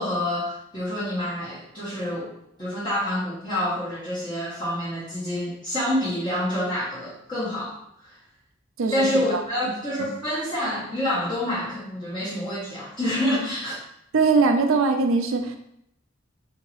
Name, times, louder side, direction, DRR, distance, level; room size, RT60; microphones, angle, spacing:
voice 1, 0.0-2.3 2.6-8.1 8.9-13.8, left 1 dB, 25° left, -11 dB, 1.1 m, -27 dB
voice 2, 14.1-15.5, right 4 dB, 90° right, 5 dB, 0.5 m, -21 dB
3.7 x 2.8 x 3.0 m, 0.74 s
head